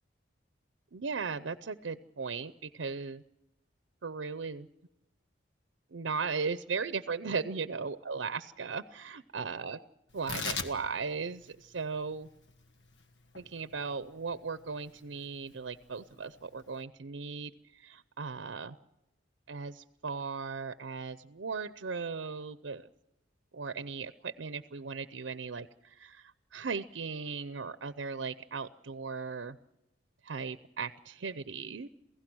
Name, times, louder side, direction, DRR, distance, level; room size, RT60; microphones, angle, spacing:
voice 1, 0.9-3.2 4.0-4.7 5.9-9.8 10.1-12.3 13.3-18.8 19.5-22.8 23.5-29.6 30.2-31.9, right 5 dB, 90° right, 13 dB, 0.6 m, -37 dB
Tearing, 10.1-16.8, left 4 dB, 70° left, 1.5 m, -43 dB
28.0 x 16.5 x 6.2 m, 0.90 s
head